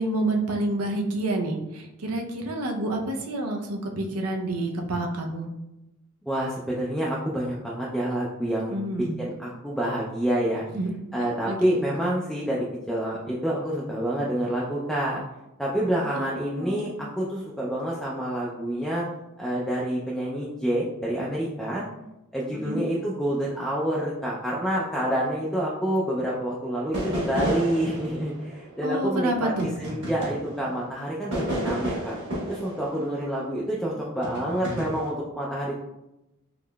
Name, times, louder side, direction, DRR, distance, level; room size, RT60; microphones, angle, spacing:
voice 1, 0.0-5.5 8.7-9.2 10.7-10.9 11.4-11.9 16.1-16.8 22.5-22.8 28.8-29.7 32.9-33.5, right 1 dB, 90° right, 2 dB, 0.6 m, -29 dB
voice 2, 6.3-8.8 9.2-10.6 11.1-15.2 15.6-16.9 17.2-19.1 19.4-21.8 22.3-32.2 32.5-35.8, right 1 dB, ahead, -5 dB, 0.3 m, -28 dB
sound 1, 26.9-30.8 31.3-33.7 34.2-35.1, right 1 dB, 55° right, 1.2 m, -32 dB
3.7 x 3.0 x 2.2 m, 0.93 s
head